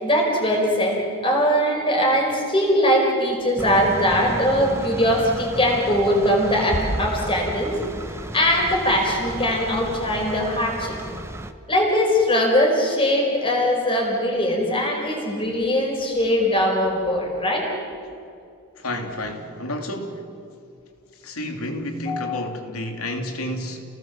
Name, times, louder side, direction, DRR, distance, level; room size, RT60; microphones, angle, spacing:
voice 1, 0.0-7.8 8.1-11.0 11.7-17.7 22.1-22.4, equal, 25° left, 0 dB, 4.9 m, -21 dB
sound 1, 3.6-11.5, right 1 dB, 10° right, 0.9 m, -34 dB
voice 2, 18.8-20.3 21.1-23.8, left 1 dB, 85° left, 4 dB, 2.9 m, -30 dB
30.0 x 19.0 x 7.3 m, 2.5 s
head